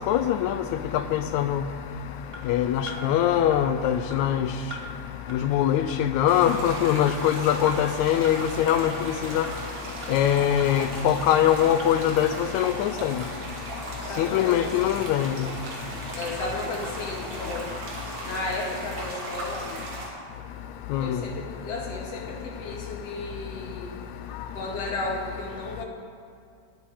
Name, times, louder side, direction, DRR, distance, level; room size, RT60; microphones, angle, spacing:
voice 1, 0.1-0.5 1.1-1.6 2.5-4.5 5.4-8.9 9.3-9.4 10.1-12.3 12.5-13.1 14.2-15.3 20.9-21.2, left 10 dB, 80° left, 9 dB, 1.8 m, -22 dB
sound 1, 2.3-2.4 2.9-3.0 3.5-3.6 4.1-4.2 4.7-4.8 5.3-5.4 5.9-6.0 6.5-6.6 7.1-7.2 7.7-7.8 8.2-8.4 8.8-8.9 9.4-9.5 10.0-10.1 10.6-10.7 11.2-11.3 11.8-11.9 12.4-12.5, right 1 dB, 30° right, 1.2 m, -40 dB
sound 2, 6.3-20.1, right 1 dB, 75° right, 3.6 m, -37 dB
voice 2, 14.0-15.0 15.7-19.8 21.0-24.0 24.3-25.8, left 2 dB, 55° left, -2 dB, 3.0 m, -34 dB
9.6 x 8.9 x 9.9 m, 2.3 s
omnidirectional pair, 3.5 m